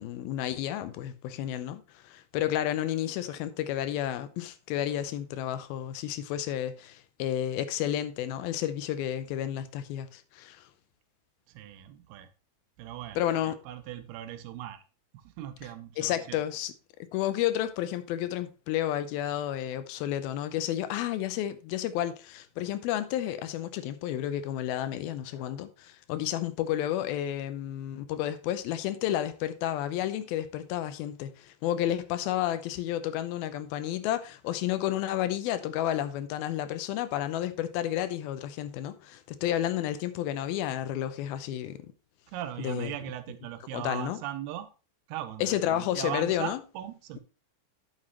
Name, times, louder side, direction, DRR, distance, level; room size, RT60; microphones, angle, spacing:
voice 1, 0.0-10.7 13.2-13.6 16.0-16.7 17.1-41.9 42.6-42.9 43.7-44.2 45.4-46.6, left 12 dB, 80° left, 2.5 m, -31 dB
voice 2, 11.5-12.3 12.8-14.8 15.1-16.4 42.3-44.7 45.1-47.2, right 12 dB, 85° right, 2.8 m, -39 dB
9.7 x 7.5 x 3.0 m
omnidirectional pair, 4.4 m